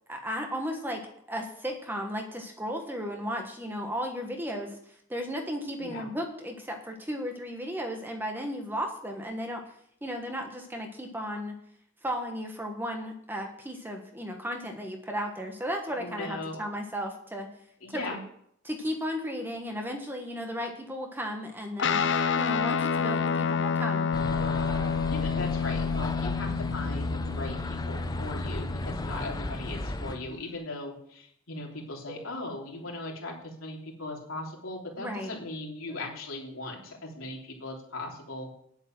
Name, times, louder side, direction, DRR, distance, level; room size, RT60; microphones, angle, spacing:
voice 1, 0.1-9.6 10.0-11.6 12.0-17.5 17.9-18.0 18.6-22.1 22.4-24.1 32.2-32.3 35.0-35.3, equal, 10° right, 3 dB, 1.3 m, -35 dB
voice 2, 16.0-16.6 17.8-18.2 25.1-38.5, left 2 dB, 80° left, -1 dB, 3.3 m, -38 dB
Guitar, 21.8-30.6, left 6 dB, 55° left, 0.6 m, -30 dB
sound 1, 24.1-30.2, left 1 dB, 20° left, 0.7 m, -34 dB
10.0 x 8.0 x 6.1 m, 0.70 s
head